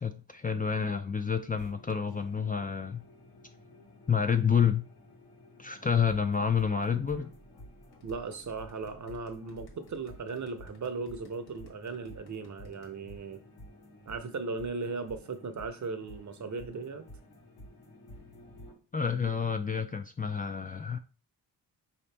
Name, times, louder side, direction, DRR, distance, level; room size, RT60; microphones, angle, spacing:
voice 1, 0.0-3.0 4.1-4.9 5.6-7.3 18.9-21.0, left 6 dB, 25° left, 0.4 m, -29 dB
sound 1, 1.6-18.7, equal, 70° left, 1.4 m, -52 dB
sound 2, 7.9-12.9, left 2 dB, 85° left, 1.3 m, -59 dB
voice 2, 8.0-13.4 14.1-17.0, right 4 dB, 50° right, 0.7 m, -37 dB
5.0 x 2.9 x 3.3 m
cardioid pair, 90°, 38 cm